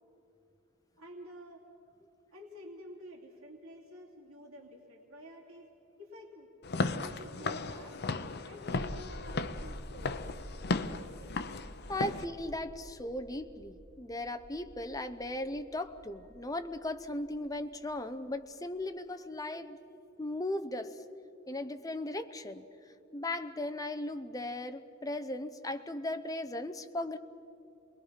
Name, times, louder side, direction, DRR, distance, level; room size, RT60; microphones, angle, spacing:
voice 1, 1.0-1.7 2.3-5.7 6.0-6.5 6.9-8.0 8.4-10.5 11.0-11.3, equal, 85° right, -2 dB, 2.9 m, -50 dB
Walk footsteps / Siren, 6.6-12.2, left 3 dB, 50° left, 0.8 m, -35 dB
sound 1, 8.7-18.8, equal, 35° right, 3.3 m, -49 dB
voice 2, 11.9-19.8 20.2-21.0 21.5-22.6 23.1-27.2, left 1 dB, 15° left, 9 dB, 0.7 m, -37 dB
28.0 x 21.5 x 5.8 m, 2.9 s
head